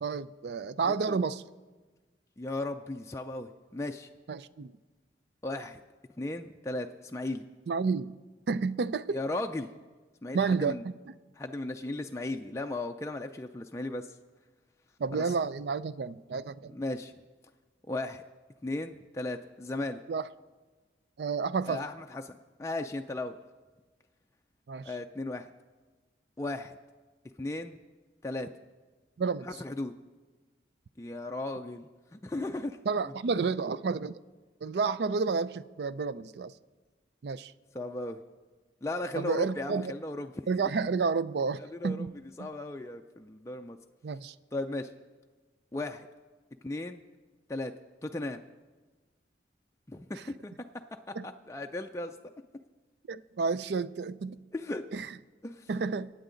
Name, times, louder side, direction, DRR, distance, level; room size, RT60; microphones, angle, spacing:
voice 1, 0.0-1.4 4.3-4.7 7.7-8.1 8.5-9.2 10.3-11.1 15.0-16.8 20.1-20.3 21.2-21.8 24.7-24.9 29.2-29.5 32.9-34.2 34.6-36.5 37.2-37.5 39.2-39.9 40.5-42.5 44.0-44.3 50.2-50.3 51.1-51.3 53.1-54.4 54.9-55.2 55.7-56.1, right 4 dB, 65° right, 0.4 m, -31 dB
voice 2, 2.4-4.1 5.4-5.8 6.2-7.4 9.1-9.7 10.2-10.8 11.4-14.1 15.3-15.4 16.7-17.1 17.9-18.2 18.6-20.0 21.7-23.4 24.9-25.5 26.4-26.8 27.4-27.8 28.2-28.5 29.5-29.9 31.0-31.9 32.1-32.8 37.7-38.2 38.8-40.3 41.7-42.1 42.4-43.8 44.5-44.9 45.7-46.1 46.6-47.0 47.5-47.7 48.0-48.4 49.9-50.5 51.1-52.1 54.5-54.8 55.4-55.7, left 2 dB, 15° left, 0.4 m, -36 dB
24.5 x 9.0 x 3.9 m
head